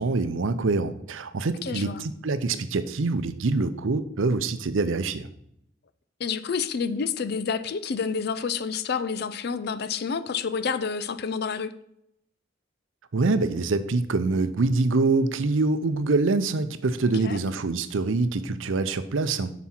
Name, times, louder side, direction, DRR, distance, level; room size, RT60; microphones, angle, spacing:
voice 1, 0.0-5.3 13.1-19.5, right 3 dB, 80° right, 12 dB, 0.6 m, -25 dB
voice 2, 1.6-2.0 6.2-11.7 17.2-17.4, left 5 dB, 55° left, 14 dB, 0.4 m, -29 dB
7.3 x 6.0 x 4.4 m, 0.75 s
head